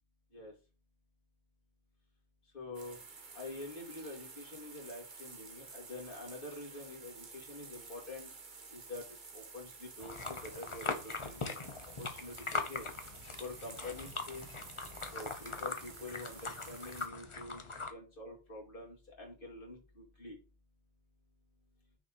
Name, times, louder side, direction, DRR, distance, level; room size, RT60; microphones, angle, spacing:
voice 1, 2.4-3.1 3.3-8.3 8.7-11.5 12.0-14.5 15.1-20.4, left 2 dB, 50° left, -2 dB, 2.4 m, -47 dB
sound 1, 2.7-17.1, right 4 dB, 45° right, 1.2 m, -52 dB
sound 2, 10.0-17.9, left 4 dB, 30° left, 0.8 m, -41 dB
6.2 x 4.2 x 4.6 m, 0.32 s
omnidirectional pair, 1.1 m